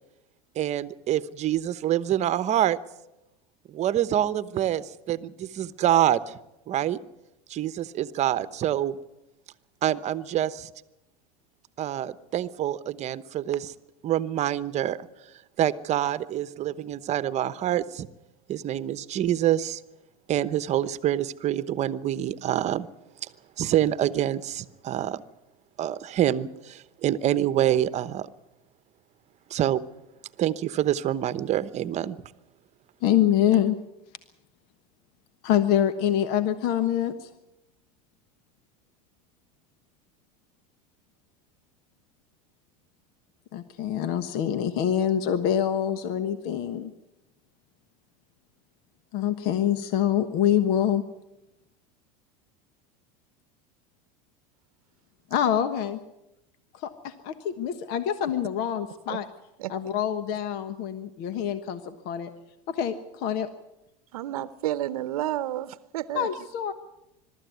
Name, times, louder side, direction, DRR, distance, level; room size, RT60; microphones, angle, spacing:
voice 1, 0.6-2.8 3.7-6.4 6.7-7.0 7.5-9.0 9.8-10.7 11.8-13.7 14.0-15.1 15.6-18.1 18.5-19.8 20.3-22.9 23.6-25.2 25.8-28.3 29.5-29.8 30.4-32.2, right 12 dB, 40° right, 1.0 m, -26 dB
voice 2, 33.0-33.8 35.4-37.3 43.5-46.9 49.1-51.0 55.3-56.0 56.7-59.3 59.7-62.3 62.7-63.5 66.1-66.7, left 10 dB, 60° left, 1.3 m, -25 dB
voice 3, 64.1-66.3, right 13 dB, 90° right, 0.8 m, -30 dB
22.5 x 13.0 x 9.3 m
supercardioid pair, 115°, 18 cm